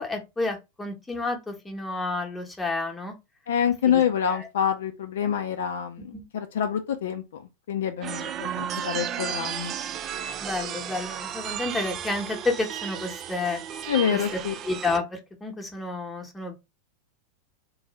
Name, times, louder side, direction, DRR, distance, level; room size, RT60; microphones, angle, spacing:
voice 1, 0.0-3.1 3.9-4.0 4.3-4.5 6.1-6.2 10.4-13.6 14.1-14.2 14.7-15.0 15.4-16.6, left 3 dB, 10° left, 1.0 m, -30 dB
voice 2, 3.5-9.8 13.9-14.6, left 8 dB, 60° left, 0.4 m, -27 dB
sound 1, 8.0-15.0, right 9 dB, 30° right, 0.3 m, -34 dB
3.8 x 2.6 x 3.0 m
figure-of-eight pair, 90°, 0 cm